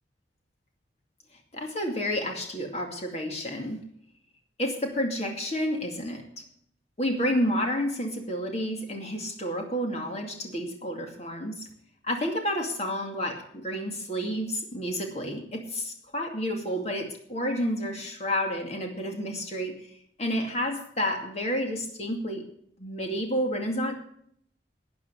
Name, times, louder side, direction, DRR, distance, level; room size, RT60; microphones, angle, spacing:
voice 1, 1.5-3.8 4.6-6.4 7.0-11.7 12.0-19.9 20.2-22.5 22.8-23.9, equal, 35° left, 2 dB, 2.4 m, -30 dB
12.0 x 9.4 x 6.2 m, 0.67 s
head